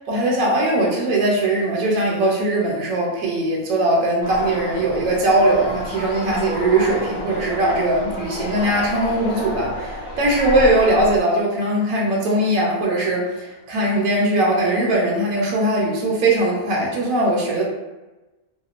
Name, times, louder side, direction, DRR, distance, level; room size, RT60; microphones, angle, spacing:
voice 1, 0.1-17.6, right 1 dB, 70° right, -3 dB, 1.0 m, -20 dB
sound 1, 4.2-11.2, left 1 dB, 80° left, 1.1 m, -30 dB
2.8 x 2.2 x 2.4 m, 1.1 s
omnidirectional pair, 1.6 m